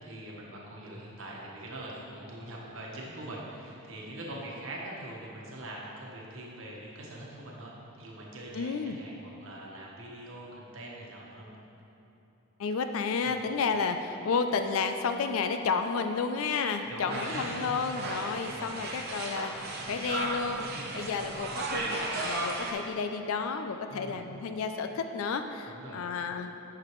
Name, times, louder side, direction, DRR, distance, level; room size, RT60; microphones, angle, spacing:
voice 1, 0.0-11.6 13.2-13.4 16.8-17.9 18.5-18.7 20.7-20.9 23.9-24.2 25.7-26.0, right 1 dB, 65° right, -3 dB, 1.2 m, -43 dB
voice 2, 8.5-9.0 12.6-20.7 20.9-26.5, left 5 dB, 70° left, 7 dB, 0.4 m, -31 dB
sound 1, 17.1-22.7, right 2 dB, 45° right, 0.8 m, -35 dB
9.6 x 5.9 x 3.1 m, 2.9 s
head